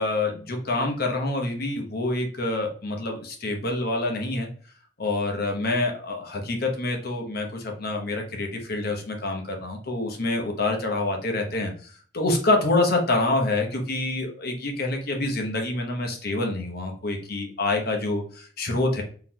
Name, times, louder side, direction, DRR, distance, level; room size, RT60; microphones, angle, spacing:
voice 1, 0.0-4.5 5.0-19.0, left 2 dB, 55° left, 2 dB, 1.0 m, -26 dB
3.9 x 3.3 x 2.8 m, 0.43 s
head